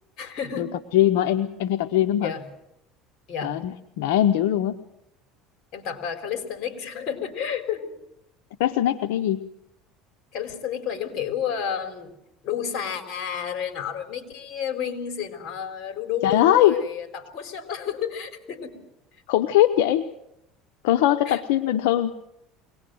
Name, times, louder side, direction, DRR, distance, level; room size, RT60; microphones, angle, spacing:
voice 1, 0.2-0.7 2.2-2.5 3.3-3.6 5.7-7.9 10.3-12.1 12.4-18.8 21.3-21.4, left 8 dB, 55° left, 7 dB, 3.9 m, -31 dB
voice 2, 0.9-2.3 3.4-4.8 8.6-9.4 16.2-16.7 19.3-20.1 20.8-22.1, left 12 dB, 85° left, 9 dB, 0.8 m, -21 dB
23.5 x 19.0 x 7.8 m, 0.84 s
supercardioid pair, 110°, 0 cm